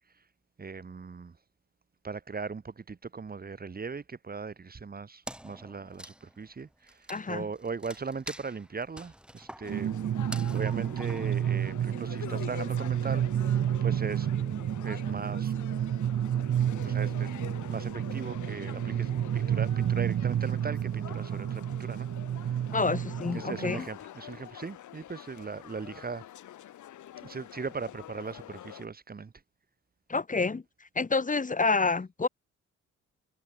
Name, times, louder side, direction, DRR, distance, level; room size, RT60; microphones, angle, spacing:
voice 1, 0.6-1.4 2.0-9.9 10.2-14.3 14.8-15.5 16.8-22.1 22.5-22.6 23.3-26.2 27.2-29.3, right 5 dB, 30° right, 2.5 m, -39 dB
Wood, 5.3-12.0, equal, 5° right, 3.1 m, -47 dB
voice 2, 7.1-7.5 22.7-23.9 30.1-32.3, left 4 dB, 25° left, 2.3 m, -28 dB
sound 1, 9.6-28.9, left 12 dB, 75° left, 4.5 m, -46 dB
sound 2, 9.7-23.8, right 10 dB, 45° right, 0.8 m, -30 dB
cardioid pair, 90°, 30 cm